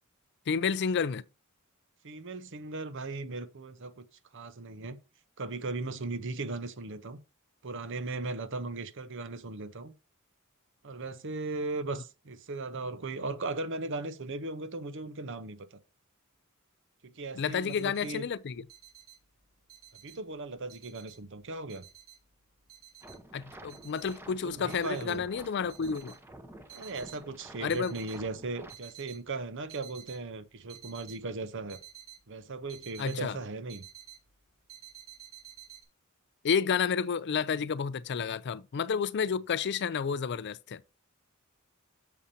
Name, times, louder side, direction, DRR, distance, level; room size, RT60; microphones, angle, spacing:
voice 1, 0.5-1.2 17.3-18.6 23.3-26.2 27.6-27.9 33.0-33.4 36.4-40.8, left 6 dB, 55° left, 0.4 m, -30 dB
voice 2, 2.0-4.0 4.3-5.0 5.4-7.2 7.6-9.9 10.8-15.8 17.0-18.2 20.0-21.8 24.4-25.2 26.7-31.8 32.3-33.8, right 3 dB, 60° right, 0.8 m, -37 dB
sound 1, 17.7-18.1 18.4-20.3 20.7-21.4 21.7-23.4 23.7-24.2 24.7-25.2 25.6-27.2 27.6-28.2 28.6-29.2 29.5-30.2 30.7-33.2 33.5-34.3 34.7-35.8, right 11 dB, 80° right, 3.0 m, -51 dB
sound 2, 23.0-28.7, right 1 dB, 10° right, 0.9 m, -50 dB
8.3 x 6.9 x 2.7 m
head